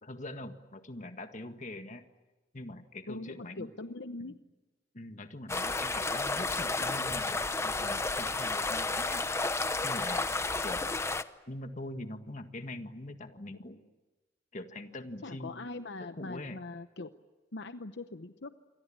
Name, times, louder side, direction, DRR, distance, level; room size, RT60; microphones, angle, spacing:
voice 1, 0.0-2.0 2.5-3.7 4.2-4.3 4.9-9.3 9.8-10.3 10.6-11.0 11.5-13.8 14.5-16.6, left 1 dB, 40° left, 7 dB, 1.8 m, -43 dB
voice 2, 3.1-4.4 15.2-17.1 17.5-18.6, left 3 dB, 65° left, 10 dB, 0.9 m, -42 dB
sound 1, 5.5-11.2, left 3 dB, 15° left, 0.9 m, -32 dB
28.0 x 23.5 x 8.8 m, 1.2 s
head